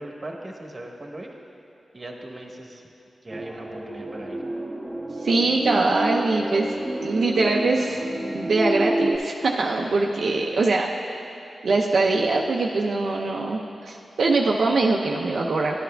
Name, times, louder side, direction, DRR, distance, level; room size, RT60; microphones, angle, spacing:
voice 1, 0.0-1.3 1.9-2.8 3.2-4.4, right 1 dB, 35° right, 1 dB, 1.0 m, -39 dB
Alien ambience, 3.3-9.2, right 1 dB, 10° right, 0.8 m, -29 dB
voice 2, 5.2-6.7 7.0-8.0 8.3-10.9 11.6-15.8, right 3 dB, 75° right, -1 dB, 0.5 m, -22 dB
12.0 x 9.2 x 2.2 m, 2.8 s
cardioid pair, 70°, 0 cm